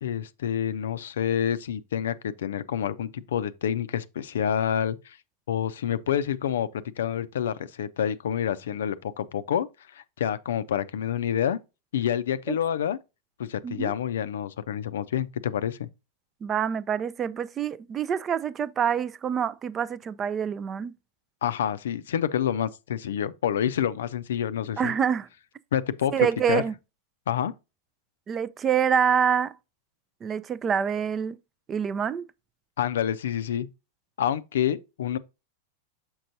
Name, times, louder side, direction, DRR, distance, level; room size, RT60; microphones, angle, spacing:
voice 1, 0.0-5.2 5.5-9.7 9.9-11.6 11.9-13.0 13.4-15.9 21.4-24.9 25.7-26.6 27.3-27.5 32.8-33.7 34.2-35.2, left 9 dB, 60° left, 0.4 m, -28 dB
voice 2, 16.4-20.9 24.8-25.3 26.1-26.7 28.3-29.5 30.2-31.4 31.7-32.2, right 7 dB, 25° right, 0.4 m, -26 dB
6.3 x 5.9 x 2.6 m
figure-of-eight pair, 90°, 0 cm